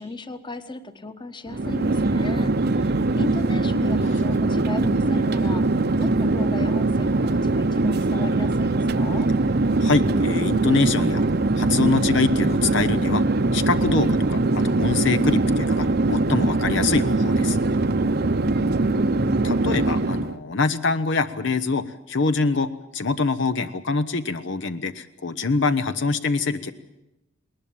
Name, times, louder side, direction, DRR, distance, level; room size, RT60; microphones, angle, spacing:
voice 1, 0.0-5.6 5.9-9.3 18.4-19.4, left 2 dB, 25° left, 11 dB, 1.3 m, -36 dB
Chatter / Fixed-wing aircraft airplane, 1.5-20.4, right 2 dB, 55° right, 0.8 m, -22 dB
voice 2, 9.8-11.3 11.6-13.2 13.5-17.6 19.4-26.7, left 4 dB, 65° left, 11 dB, 0.9 m, -24 dB
20.5 x 19.5 x 8.7 m, 0.93 s
head